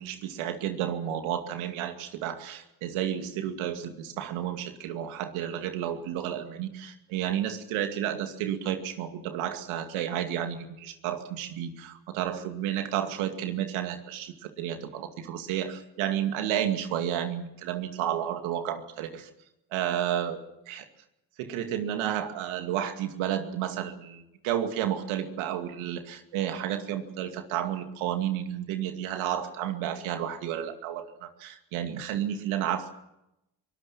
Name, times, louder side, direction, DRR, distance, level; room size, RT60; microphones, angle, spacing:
voice 1, 0.0-19.3 19.7-20.4 20.7-20.9 21.4-32.9, right 10 dB, 80° right, 6 dB, 2.4 m, -31 dB
23.5 x 19.0 x 7.3 m, 0.86 s
hypercardioid pair, 50°, 48 cm